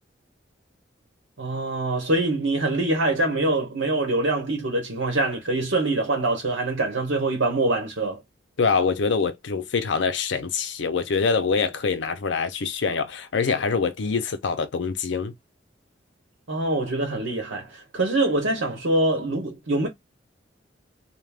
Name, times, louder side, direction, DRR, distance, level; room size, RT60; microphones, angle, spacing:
voice 1, 1.4-8.2 16.5-19.9, right 2 dB, 90° right, 1.0 m, -24 dB
voice 2, 8.6-15.3, left 5 dB, 70° left, 0.5 m, -24 dB
2.4 x 2.2 x 3.3 m
head